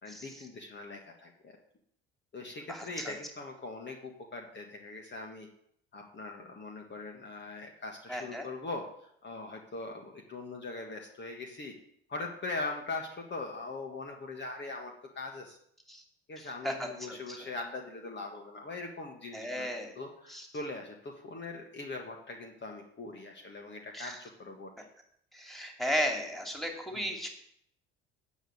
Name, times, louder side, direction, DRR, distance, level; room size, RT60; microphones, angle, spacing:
voice 1, 0.0-1.6 2.3-5.5 5.9-11.7 12.1-15.6 16.3-19.7 19.9-24.8 26.9-27.0, left 3 dB, 35° left, 1 dB, 1.7 m, -41 dB
voice 2, 8.1-8.5 15.9-16.0 16.4-17.4 19.3-19.9 20.3-20.5 23.9-24.2 25.3-27.3, equal, ahead, 2 dB, 2.6 m, -35 dB
9.0 x 5.4 x 7.9 m, 0.70 s
hypercardioid pair, 65°, 30 cm